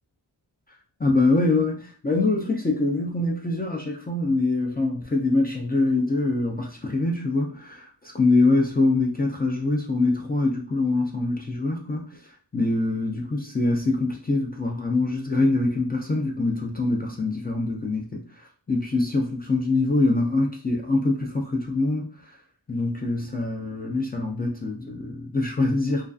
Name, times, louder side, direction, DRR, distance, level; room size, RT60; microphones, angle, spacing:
voice 1, 1.0-22.4 22.7-26.1, left 2 dB, 25° left, 0 dB, 0.4 m, -24 dB
2.4 x 2.3 x 2.3 m, 0.40 s
wide cardioid pair, 75°, 43 cm